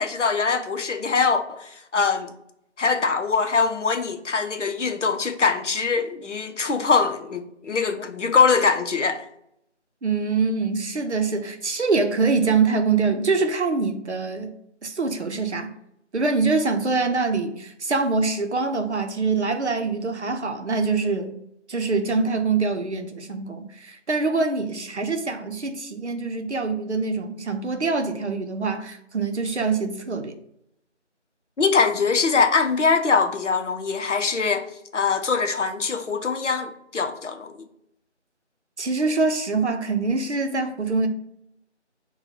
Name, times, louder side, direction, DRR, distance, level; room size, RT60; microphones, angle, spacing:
voice 1, 0.0-2.3 2.8-9.3 31.6-34.7 34.9-37.6, left 5 dB, 75° left, 0.6 m, -22 dB
voice 2, 10.0-14.5 14.8-15.7 16.1-21.3 21.7-30.4 38.8-41.1, right 4 dB, 70° right, 0.6 m, -24 dB
5.9 x 2.2 x 2.7 m
figure-of-eight pair, 175°, 36 cm